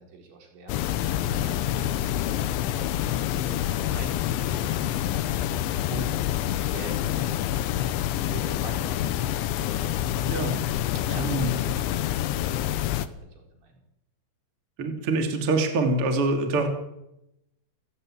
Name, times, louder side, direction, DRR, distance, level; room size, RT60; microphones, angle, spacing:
voice 1, 0.0-5.1 5.6-6.2 6.7-10.2 10.9-13.8, right 3 dB, 70° right, 2 dB, 6.7 m, -44 dB
sound 1, 0.7-13.1, left 12 dB, 80° left, 3.4 m, -27 dB
sound 2, 1.0-9.9, left 5 dB, 60° left, 4.9 m, -46 dB
voice 2, 10.2-10.6 11.2-11.5 14.8-16.7, right 2 dB, 35° right, 4 dB, 3.0 m, -25 dB
29.5 x 15.5 x 8.8 m, 0.90 s
omnidirectional pair, 5.4 m